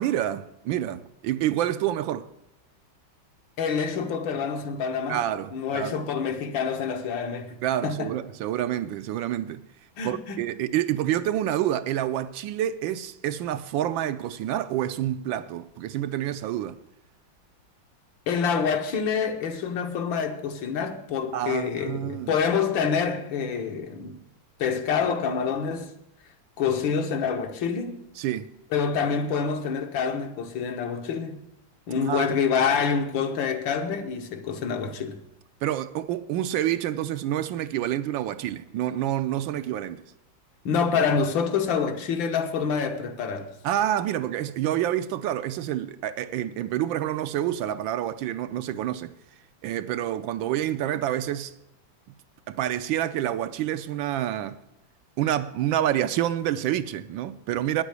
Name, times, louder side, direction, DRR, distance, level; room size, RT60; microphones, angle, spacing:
voice 1, 0.0-2.3 5.1-6.0 7.6-9.6 10.0-16.8 21.3-22.3 28.2-28.5 32.0-32.3 35.6-40.0 43.6-49.1 49.6-51.5 52.5-54.6 55.2-57.8, right 12 dB, 75° right, 1.3 m, -28 dB
voice 2, 3.6-5.2 5.5-8.1 10.0-10.4 18.3-24.2 24.6-25.9 26.6-28.1 28.7-31.5 31.9-35.2 40.7-43.5, left 6 dB, 70° left, 1.8 m, -27 dB
9.6 x 8.1 x 8.1 m
omnidirectional pair, 2.2 m